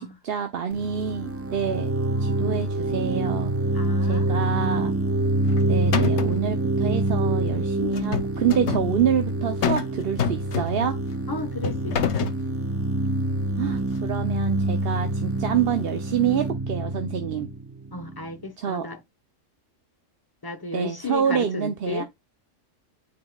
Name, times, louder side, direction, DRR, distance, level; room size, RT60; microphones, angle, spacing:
voice 1, 0.0-1.9 2.2-3.5 4.0-4.9 5.7-11.0 13.6-17.5 18.6-18.9 20.7-22.0, right 8 dB, 55° right, 0.9 m, -27 dB
sound 1, 0.7-18.3, right 2 dB, 15° right, 0.6 m, -26 dB
voice 2, 3.7-4.3 11.3-12.3 17.9-19.0 20.4-22.0, left 3 dB, 20° left, 1.0 m, -34 dB
sound 2, 5.3-5.6 5.9-6.5 7.9-8.9 9.6-9.9 10.2-11.0 11.6-12.4, left 7 dB, 65° left, 1.0 m, -26 dB
9.1 x 4.8 x 2.3 m
omnidirectional pair, 1.3 m